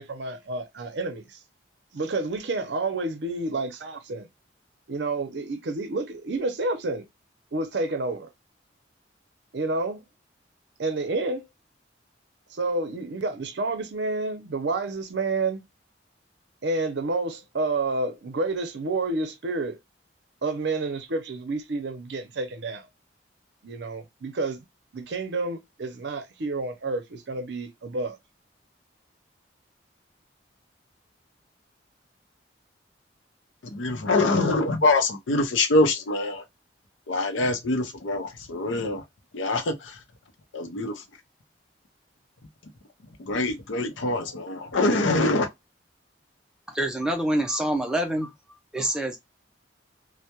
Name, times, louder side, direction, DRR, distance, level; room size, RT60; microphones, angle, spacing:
voice 1, 0.0-1.4 1.9-4.3 4.9-7.1 7.5-8.3 9.5-10.0 10.8-11.5 12.5-15.6 16.6-19.8 20.4-22.9 23.6-24.6 24.9-28.2, right 3 dB, 65° right, 0.6 m, -29 dB
voice 2, 33.7-36.4 37.1-39.0 39.3-39.7 40.5-40.9 43.3-45.5, left 2 dB, 85° left, 0.6 m, -24 dB
voice 3, 46.7-48.3 48.7-49.2, right 1 dB, 5° right, 0.4 m, -26 dB
2.2 x 2.1 x 2.7 m
head